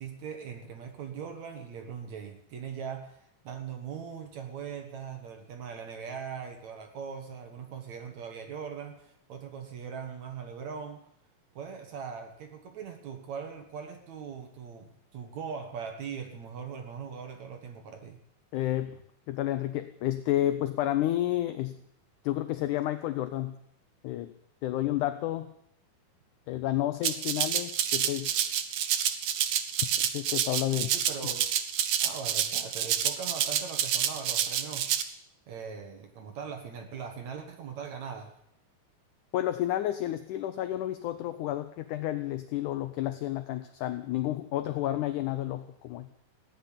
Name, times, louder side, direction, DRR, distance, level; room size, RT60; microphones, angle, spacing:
voice 1, 0.0-11.0 11.5-18.2 30.9-31.5 32.0-34.9 35.5-38.3, right 6 dB, 60° right, 5 dB, 2.4 m, -40 dB
voice 2, 18.5-19.0 19.3-21.8 22.2-23.6 24.0-24.3 24.6-25.5 26.5-28.4 30.0-30.9 39.3-46.1, left 13 dB, 80° left, 11 dB, 1.8 m, -30 dB
Rattle (instrument), 27.0-35.0, right 10 dB, 75° right, 1.6 m, -28 dB
16.0 x 10.5 x 8.8 m, 0.70 s
omnidirectional pair, 4.3 m